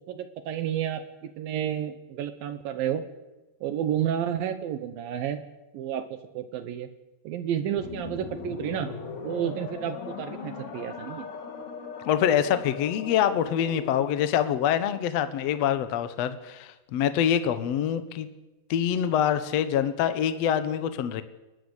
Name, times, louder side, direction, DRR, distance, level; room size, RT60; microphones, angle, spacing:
voice 1, 0.1-3.0 3.6-5.4 5.7-6.9 7.2-8.9 9.2-11.3, right 10 dB, 75° right, 10 dB, 2.7 m, -31 dB
sound 1, 7.8-14.3, left 5 dB, 50° left, 3.0 m, -39 dB
voice 2, 12.0-18.3 18.7-21.2, left 9 dB, 70° left, 11 dB, 1.5 m, -25 dB
29.5 x 12.0 x 8.1 m, 1.1 s
omnidirectional pair, 4.4 m